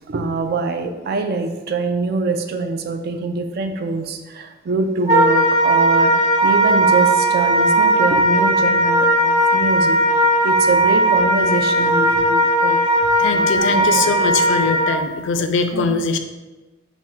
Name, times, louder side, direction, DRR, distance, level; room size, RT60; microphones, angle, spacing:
voice 1, 0.1-12.8 13.2-14.4 15.7-15.9, right 3 dB, 55° right, 7 dB, 0.3 m, -24 dB
Wind instrument woodwind instrument, 5.1-14.9, right 1 dB, 35° right, 1.0 m, -17 dB
voice 2, 13.2-16.2, left 4 dB, 70° left, 7 dB, 0.4 m, -21 dB
3.5 x 2.1 x 4.3 m, 1.2 s
head